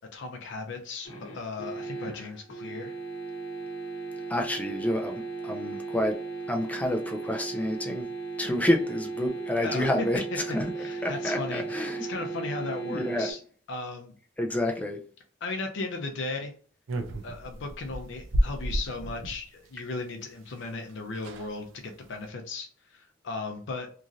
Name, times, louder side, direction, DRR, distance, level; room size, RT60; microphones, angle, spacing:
voice 1, 0.1-1.1 1.3-2.9 9.6-9.9 10.8-13.4 13.7-14.1 15.4-16.5 17.2-23.9, left 3 dB, 65° left, 4 dB, 0.5 m, -36 dB
sound 1, 1.0-13.3, right 4 dB, 90° left, 0.8 m, -36 dB
voice 2, 2.0-2.3 4.3-6.2 6.5-8.1 8.4-12.2 12.8-13.3 14.4-15.0, left 1 dB, 10° left, 3 dB, 0.3 m, -29 dB
sound 2, 16.9-19.4 20.6-20.7 20.9-21.0 21.2-21.5 22.0-22.3, equal, 70° right, 0.5 m, -31 dB
3.0 x 2.5 x 2.5 m, 0.43 s
head